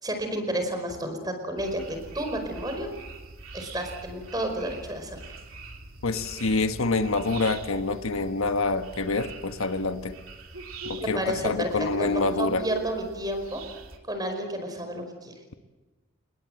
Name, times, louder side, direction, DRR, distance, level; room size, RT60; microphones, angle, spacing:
voice 1, 0.0-2.9 3.5-5.2 11.0-13.6 14.1-15.3, right 1 dB, 20° right, 6 dB, 4.9 m, -31 dB
sound 1, 1.6-14.0, right 3 dB, 80° right, 2.8 m, -42 dB
voice 2, 6.0-10.2 10.8-12.6, left 3 dB, 85° left, 8 dB, 1.4 m, -26 dB
28.5 x 20.5 x 7.8 m, 1.2 s
head